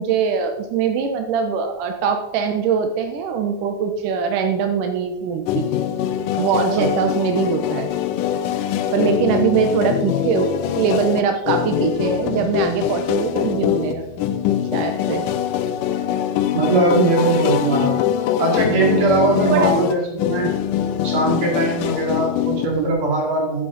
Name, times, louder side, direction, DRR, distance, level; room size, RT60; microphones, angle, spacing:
voice 1, 0.0-5.7 6.3-7.9 8.9-14.1 14.7-15.3 19.5-19.7, right 6 dB, 85° right, 6 dB, 2.4 m, -22 dB
sound 1, 5.5-22.9, left 10 dB, 85° left, 2.2 m, -23 dB
voice 2, 16.5-17.9 18.4-20.6 21.0-23.7, right 2 dB, 45° right, -1 dB, 3.3 m, -20 dB
10.0 x 7.7 x 4.0 m, 0.85 s
omnidirectional pair, 3.7 m